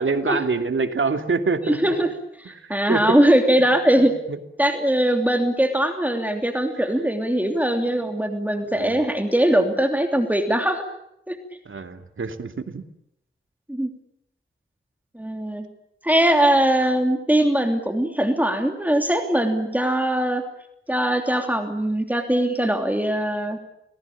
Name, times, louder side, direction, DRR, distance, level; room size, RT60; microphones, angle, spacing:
voice 1, 0.0-2.0 2.4-3.2 3.6-3.7 4.0-4.4 8.7-9.0 11.6-12.8, right 4 dB, 75° right, 7 dB, 2.8 m, -26 dB
voice 2, 1.7-2.1 2.4-4.1 4.6-10.8 11.3-11.4 13.7-13.9 15.1-15.7 16.0-20.4 20.9-23.6, right 1 dB, 10° right, 5 dB, 3.0 m, -21 dB
29.5 x 20.5 x 8.7 m, 0.79 s
wide cardioid pair, 90°, 21 cm